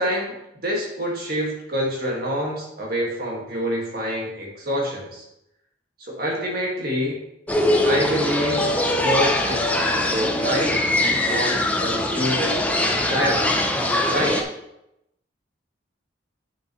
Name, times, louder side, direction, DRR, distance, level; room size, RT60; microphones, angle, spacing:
voice 1, 0.0-5.2 6.0-7.2 7.8-8.6 9.0-10.8 11.2-13.6 14.1-14.5, equal, 50° right, -2 dB, 1.9 m, -26 dB
sound 1, 7.5-14.4, left 1 dB, 10° left, 0.6 m, -22 dB
8.5 x 6.1 x 3.1 m, 0.84 s
head